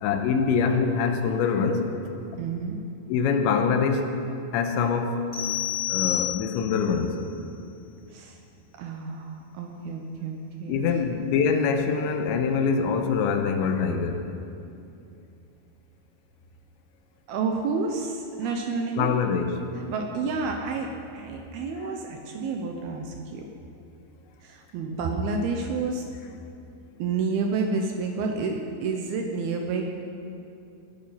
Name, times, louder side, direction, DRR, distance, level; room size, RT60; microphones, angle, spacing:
voice 1, 0.0-1.9 3.1-4.1 4.5-5.2 5.9-7.2 10.7-14.3 19.0-19.5, left 5 dB, 90° left, 6 dB, 3.1 m, -24 dB
voice 2, 2.4-2.8 8.1-8.4 8.7-10.8 17.3-19.1 19.9-23.5 24.4-26.1 27.0-30.1, right 4 dB, 75° right, 3 dB, 2.4 m, -30 dB
sound 1, 5.3-6.9, left 13 dB, 15° left, 3.3 m, -29 dB
20.5 x 8.5 x 5.7 m, 2.7 s
omnidirectional pair, 5.2 m